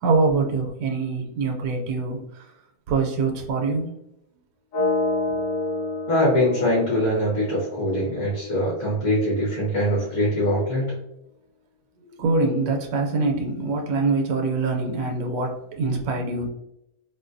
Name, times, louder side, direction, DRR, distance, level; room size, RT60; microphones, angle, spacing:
voice 1, 0.0-2.5 2.9-3.9 12.1-16.5, right 3 dB, 75° right, 2 dB, 1.0 m, -24 dB
sound 1, 4.7-8.7, left 2 dB, 85° left, 1.8 m, -28 dB
voice 2, 6.1-10.9, equal, 50° left, -6 dB, 1.5 m, -23 dB
3.7 x 2.2 x 2.5 m, 0.83 s
omnidirectional pair, 1.7 m